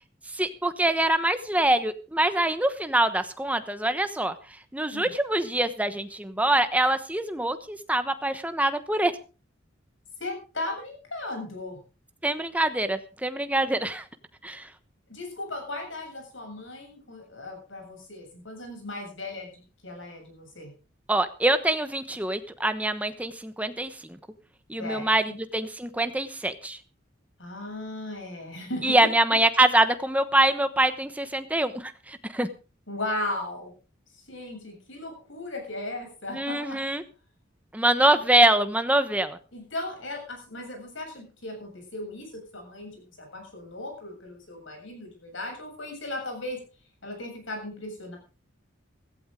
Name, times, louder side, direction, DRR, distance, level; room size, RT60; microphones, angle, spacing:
voice 1, 0.3-4.3 4.7-9.1 12.2-14.0 14.4-14.7 21.1-24.2 24.7-26.8 28.8-32.5 36.3-37.0 37.7-39.4, right 1 dB, 5° right, 10 dB, 1.1 m, -24 dB
voice 2, 10.2-11.8 15.1-20.7 24.8-25.4 27.4-29.0 32.9-33.7 34.3-36.9 39.5-46.6 47.0-48.2, left 2 dB, 70° left, 3 dB, 7.6 m, -37 dB
16.0 x 15.5 x 3.7 m, 0.34 s
head